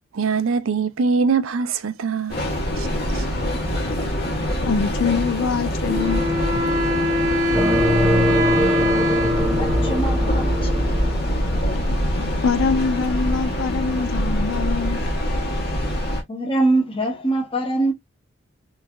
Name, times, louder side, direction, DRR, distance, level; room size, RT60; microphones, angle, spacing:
voice 1, 0.1-2.4 2.7-2.9 3.1-3.2, right 5 dB, 65° right, 0.5 m, -22 dB
Train, 2.3-16.2, equal, 45° left, 1.3 m, -25 dB
voice 2, 4.7-6.3 12.4-15.0, left 5 dB, 65° left, 0.5 m, -24 dB
Wind instrument woodwind instrument, 5.8-11.3, left 1 dB, 35° right, 0.9 m, -23 dB
sound 1, 7.5-13.2, right 1 dB, ahead, 0.4 m, -24 dB
voice 3, 9.6-10.8 16.3-17.9, right 2 dB, 25° left, 0.8 m, -23 dB
3.2 x 3.2 x 2.3 m
head